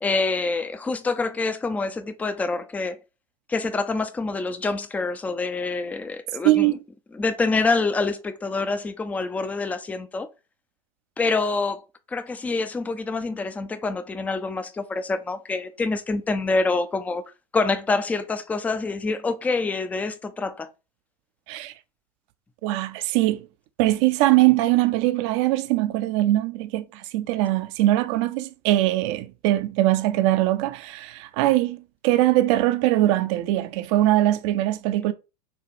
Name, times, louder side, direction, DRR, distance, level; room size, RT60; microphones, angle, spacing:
voice 1, 0.0-3.0 3.5-6.8 7.1-10.3 11.2-11.8 12.1-17.2 17.5-20.7, left 3 dB, 5° left, 0.4 m, -26 dB
voice 2, 6.4-6.8 21.5-21.7 22.6-23.5 23.8-31.8 32.0-35.1, right 16 dB, 50° right, 0.6 m, -21 dB
6.9 x 2.4 x 3.0 m
figure-of-eight pair, 90°, 20 cm